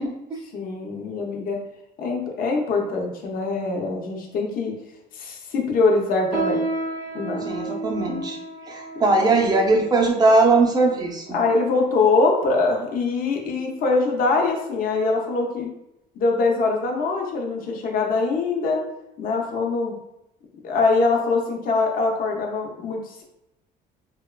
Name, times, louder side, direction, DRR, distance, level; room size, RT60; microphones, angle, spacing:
voice 1, 0.0-0.4 7.4-8.4 8.7-11.4, right 3 dB, 20° right, 0 dB, 0.5 m, -20 dB
voice 2, 0.5-1.6 2.0-4.7 5.1-6.6 7.1-7.4 11.3-15.7 16.2-18.8 19.2-20.0 20.6-23.2, left 3 dB, 50° left, 1 dB, 0.5 m, -23 dB
sound 1, 6.3-12.0 12.7-12.8 13.5-13.8 14.2-14.4 15.1-15.2, right 3 dB, 85° right, 0.5 m, -32 dB
2.8 x 2.2 x 2.2 m, 0.88 s
cardioid pair, 115°, 18 cm